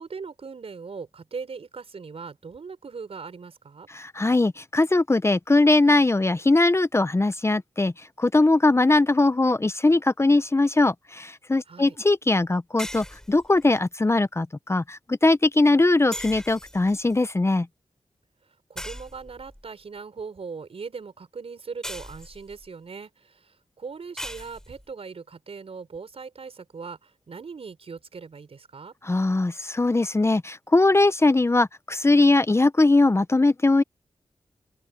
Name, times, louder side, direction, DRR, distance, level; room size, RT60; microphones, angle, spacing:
voice 1, 0.0-3.9 11.6-12.0 18.4-28.9, right 5 dB, 65° right, 5.1 m, -40 dB
voice 2, 3.9-17.7 29.0-33.8, left 2 dB, 25° left, 0.7 m, -21 dB
sound 1, 12.8-13.8 16.1-17.1 18.8-19.6 21.8-22.7 24.2-24.9, equal, 5° left, 5.6 m, -39 dB
open air
cardioid pair, 60°, 11 cm